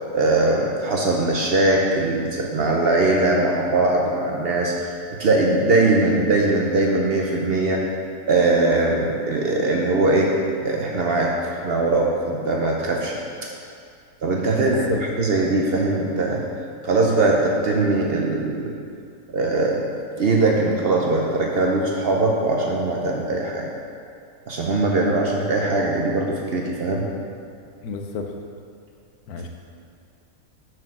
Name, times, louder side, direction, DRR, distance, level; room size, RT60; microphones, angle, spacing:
voice 1, 0.1-4.9 5.2-7.8 8.3-10.3 10.6-11.3 11.6-13.2 14.2-14.8 15.2-16.4 16.8-18.7 19.3-19.9 20.2-23.7 24.5-27.0, right 2 dB, 55° right, -1 dB, 0.7 m, -21 dB
voice 2, 14.6-15.0 27.8-28.3 29.3-29.5, left 4 dB, 85° left, 4 dB, 1.2 m, -30 dB
6.4 x 4.6 x 5.9 m, 2.4 s
omnidirectional pair, 1.6 m